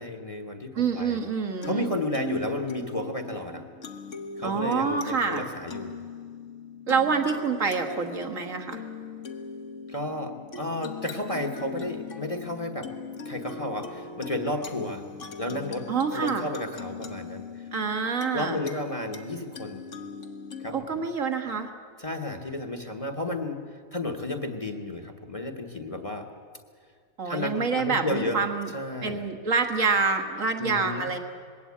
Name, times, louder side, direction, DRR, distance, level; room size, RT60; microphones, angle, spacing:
voice 1, 0.0-1.2 1.6-3.6 4.4-5.9 9.9-12.9 13.2-15.0 15.4-17.7 18.3-19.8 20.6-21.0 22.0-23.6 23.9-26.3 27.2-28.4 28.7-29.2 30.6-31.1, left 1 dB, 25° left, 5 dB, 1.2 m, -32 dB
voice 2, 0.7-1.9 4.4-5.4 6.9-8.8 15.9-16.5 17.7-18.6 20.7-21.7 27.2-28.7 29.0-31.2, right 5 dB, 60° right, 4 dB, 1.9 m, -27 dB
sound 1, 1.1-20.8, left 5 dB, 55° left, 1.5 m, -40 dB
20.5 x 17.0 x 8.5 m, 2.1 s
omnidirectional pair, 1.5 m